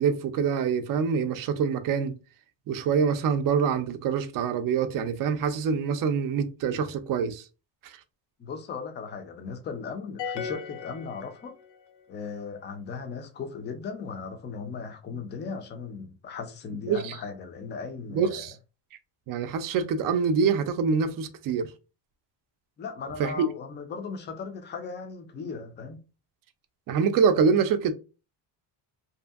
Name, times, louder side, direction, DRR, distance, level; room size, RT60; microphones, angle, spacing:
voice 1, 0.0-2.1 2.7-7.5 7.8-8.0 16.9-17.2 18.1-18.6 19.3-21.7 23.2-23.5 26.9-27.9, right 6 dB, 50° right, 0.5 m, -25 dB
voice 2, 8.4-11.5 12.1-18.5 22.8-26.0, left 5 dB, 25° left, 0.4 m, -37 dB
sound 1, 10.2-11.9, left 6 dB, 80° left, 0.6 m, -36 dB
2.7 x 2.6 x 2.3 m
cardioid pair, 175°, 44 cm